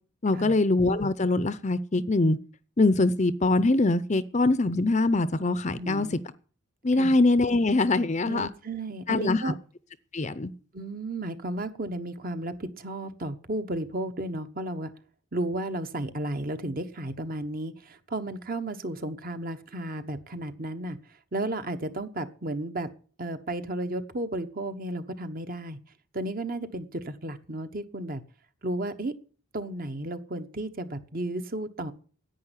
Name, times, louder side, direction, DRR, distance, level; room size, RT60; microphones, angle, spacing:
voice 1, 0.2-2.4 2.8-6.1 6.8-8.5 9.1-9.4 10.1-10.5, left 2 dB, 30° left, 0.6 m, -23 dB
voice 2, 5.8-6.2 7.0-7.1 8.3-9.5 10.7-14.9 15.3-21.0 21.3-22.9 23.2-25.8 26.1-28.2 28.6-29.1 29.5-31.9, right 1 dB, 40° right, 1.1 m, -33 dB
10.5 x 9.0 x 9.8 m
head